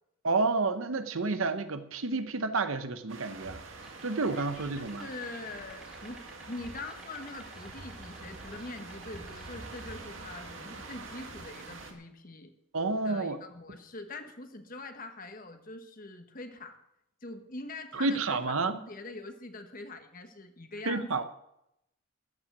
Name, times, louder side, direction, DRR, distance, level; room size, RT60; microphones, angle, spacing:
voice 1, 0.2-3.6 4.0-5.1 12.7-13.4 17.9-18.8 20.9-21.2, right 3 dB, 85° right, 10 dB, 0.9 m, -30 dB
sound 1, 3.1-11.9, right 3 dB, 70° right, 1.9 m, -46 dB
sound 2, 3.8-10.1, equal, 5° right, 2.4 m, -55 dB
voice 2, 4.3-12.5 13.0-16.8 17.2-21.2, left 2 dB, 45° left, 7 dB, 1.3 m, -43 dB
13.5 x 9.0 x 6.1 m, 0.82 s
head